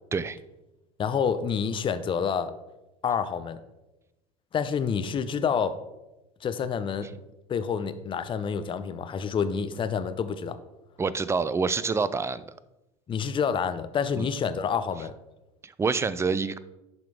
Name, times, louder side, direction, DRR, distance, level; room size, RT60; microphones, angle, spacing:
voice 1, 1.0-2.5 3.0-3.6 4.5-5.8 6.4-7.1 7.5-10.6 13.1-15.1, left 6 dB, 30° left, 11 dB, 0.6 m, -28 dB
voice 2, 11.0-12.4 14.2-14.3 15.6-16.6, right 4 dB, 15° right, 16 dB, 0.4 m, -27 dB
11.0 x 3.8 x 3.6 m, 0.98 s
hypercardioid pair, 80°, 18 cm